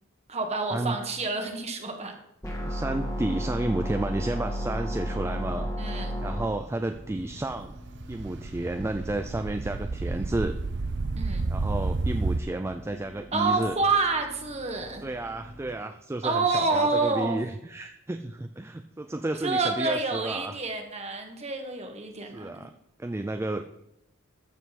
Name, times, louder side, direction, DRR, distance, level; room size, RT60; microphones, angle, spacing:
voice 1, 0.3-2.1 5.8-6.2 11.1-11.5 13.3-15.0 16.2-17.4 19.4-22.5, right 3 dB, 30° right, 4 dB, 1.5 m, -28 dB
sound 1, 2.4-6.4, equal, 15° left, 1.6 m, -31 dB
voice 2, 2.6-7.7 8.1-10.6 11.5-13.7 15.0-20.6 22.3-22.7 23.0-23.8, right 2 dB, 10° right, 7 dB, 0.3 m, -32 dB
sound 2, 4.8-5.7 6.4-6.5 6.8-12.4, right 3 dB, 55° right, 0.6 m, -32 dB
sound 3, 6.9-15.6, equal, 85° right, 4.4 m, -48 dB
13.5 x 7.2 x 4.2 m, 0.81 s
head